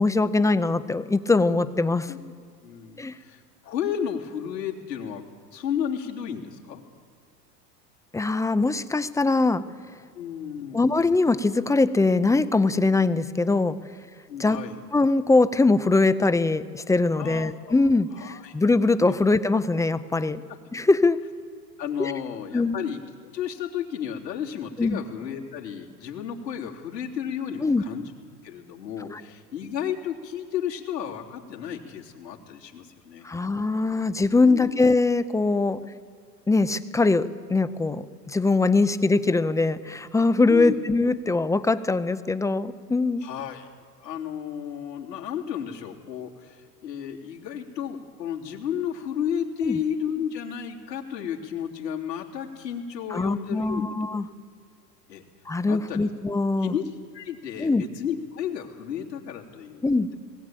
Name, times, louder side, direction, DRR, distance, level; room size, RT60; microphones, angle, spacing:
voice 1, 0.0-2.1 3.0-3.1 8.1-9.7 10.7-13.8 14.4-14.6 14.9-20.4 20.7-21.2 22.0-22.1 22.5-22.8 24.8-25.0 27.6-27.8 29.1-29.2 33.2-35.8 36.5-43.3 49.6-49.8 53.1-54.3 55.5-56.7 57.6-57.8 59.8-60.1, left 3 dB, 5° left, 13 dB, 0.6 m, -22 dB
voice 2, 2.6-5.2 5.5-6.8 10.1-10.8 14.3-14.8 17.2-17.7 18.1-18.5 21.8-28.1 28.4-33.3 34.4-34.8 40.5-40.8 43.2-43.7 44.0-53.8 55.1-55.2 55.7-56.1 56.6-56.8 57.1-59.8, left 8 dB, 90° left, 0 dB, 3.4 m, -33 dB
20.0 x 16.5 x 9.0 m, 2.2 s
hypercardioid pair, 110°, 48 cm